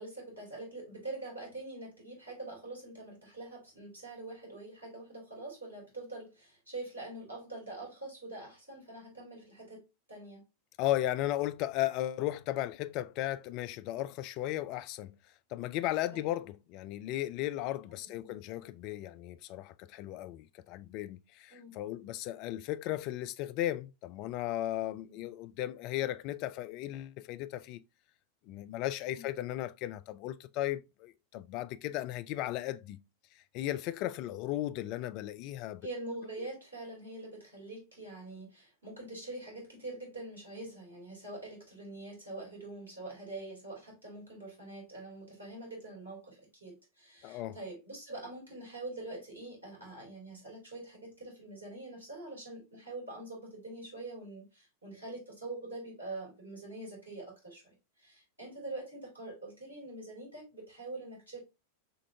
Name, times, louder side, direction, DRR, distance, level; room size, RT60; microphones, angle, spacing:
voice 1, 0.0-9.8 10.1-10.4 16.1-16.3 18.0-18.3 21.5-21.8 25.0-25.3 29.0-29.3 35.8-57.7 58.0-61.4, right 2 dB, 75° right, 3.0 m, -44 dB
voice 2, 10.8-15.2 15.5-27.8 28.5-33.0 33.5-35.9 47.2-47.6, left 14 dB, 40° left, 0.4 m, -36 dB
6.5 x 2.5 x 2.7 m
figure-of-eight pair, 90°, 0 cm